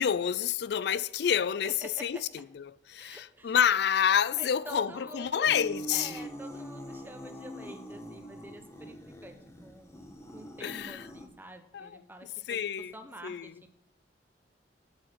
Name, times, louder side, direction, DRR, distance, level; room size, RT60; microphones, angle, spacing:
voice 1, 0.0-2.2 2.5-6.2 10.6-11.0 11.7-12.0 12.5-12.9 13.2-13.5, left 8 dB, 65° left, 0.4 m, -28 dB
voice 2, 1.6-2.2 3.0-3.5 4.3-5.6 5.9-10.0 10.3-12.6 12.9-13.5, right 1 dB, 10° right, 1.1 m, -47 dB
sound 1, 5.5-11.3, equal, 15° left, 1.3 m, -44 dB
8.5 x 8.0 x 7.2 m
head